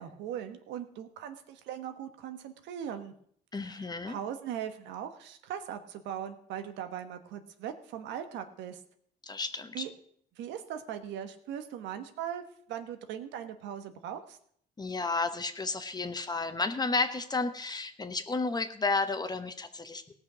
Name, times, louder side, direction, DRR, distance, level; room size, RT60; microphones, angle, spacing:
voice 1, 0.0-3.1 3.6-8.8 9.7-9.9 10.4-12.4 12.7-14.4, right 9 dB, 85° right, 8 dB, 1.2 m, -39 dB
voice 2, 3.5-4.2 9.3-9.8 14.8-20.1, left 3 dB, 20° left, 9 dB, 1.1 m, -32 dB
17.5 x 6.0 x 6.2 m, 0.64 s
cardioid pair, 90°, 18 cm